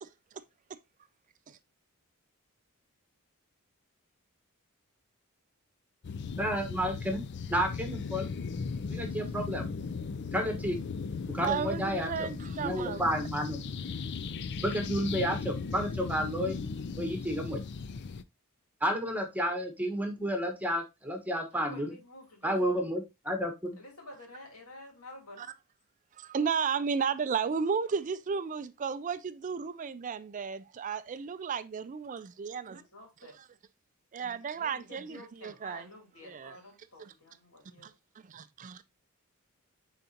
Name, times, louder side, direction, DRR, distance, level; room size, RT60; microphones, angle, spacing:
sound 1, 6.0-18.2, left 5 dB, 50° left, 0.4 m, -37 dB
voice 1, 6.4-7.2 7.5-8.3 8.9-9.7 10.3-10.8 11.3-12.3 12.6-13.7 14.6-16.6 17.0-17.6 18.8-21.9 22.4-23.8, equal, 5° right, 1.3 m, -31 dB
voice 2, 11.4-13.0 25.4-25.5 26.2-32.8 34.1-35.9 36.2-36.5 37.0-37.1 37.8-37.9 38.2-38.8, right 6 dB, 35° right, 0.3 m, -34 dB
voice 3, 21.5-22.9 23.8-25.5 32.7-33.3 34.6-37.9, left 2 dB, 75° left, 3.0 m, -50 dB
9.1 x 4.0 x 2.8 m
head